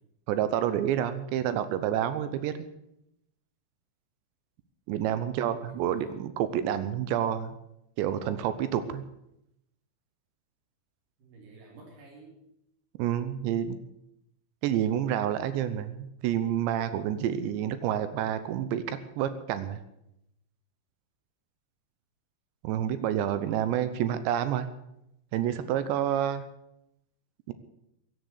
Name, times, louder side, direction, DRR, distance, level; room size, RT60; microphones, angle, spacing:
voice 1, 0.3-2.7 4.9-7.5 8.0-9.0 13.0-13.8 14.6-19.8 22.6-24.7 25.3-26.4 27.5-27.6, right 10 dB, 85° right, 12 dB, 3.1 m, -29 dB
voice 2, 5.1-6.1 11.2-12.4 23.2-24.2, right 3 dB, 70° right, -3 dB, 5.1 m, -53 dB
16.5 x 10.5 x 8.2 m, 0.82 s
omnidirectional pair, 5.1 m